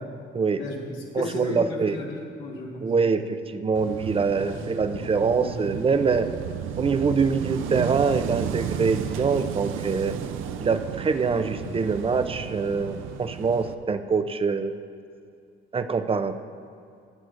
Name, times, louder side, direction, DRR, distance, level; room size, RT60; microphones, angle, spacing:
voice 1, 0.6-2.9 4.4-4.6 4.9-5.5 5.9-6.0, left 2 dB, 80° left, -3 dB, 1.6 m, -35 dB
voice 2, 1.1-1.9 2.8-6.3 6.8-10.1 10.6-14.7 15.7-16.4, right 5 dB, 30° right, 10 dB, 0.5 m, -24 dB
Wind / Waves surf, 3.7-13.7, right 9 dB, 85° right, 0.5 m, -33 dB
22.0 x 7.7 x 2.5 m, 2.4 s
cardioid pair, 90°, 20 cm